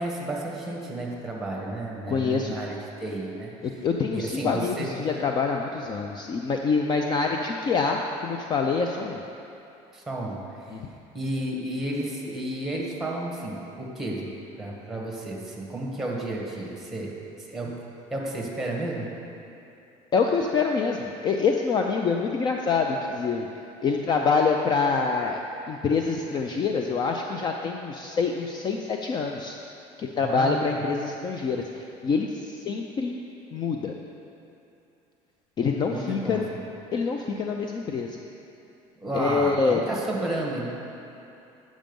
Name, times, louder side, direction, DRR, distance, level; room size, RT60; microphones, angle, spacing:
voice 1, 0.0-3.5 4.1-4.9 9.9-10.4 11.1-17.7 18.1-19.1 30.2-30.8 35.9-36.4 39.0-40.7, right 1 dB, ahead, -2 dB, 1.4 m, -32 dB
voice 2, 2.1-2.6 3.6-9.2 10.7-10.8 20.1-29.6 30.0-33.2 33.5-33.9 35.6-36.5 36.9-38.2 39.1-39.8, left 4 dB, 30° left, 2 dB, 0.4 m, -26 dB
8.8 x 6.2 x 5.3 m, 2.8 s
cardioid pair, 145°, 14 cm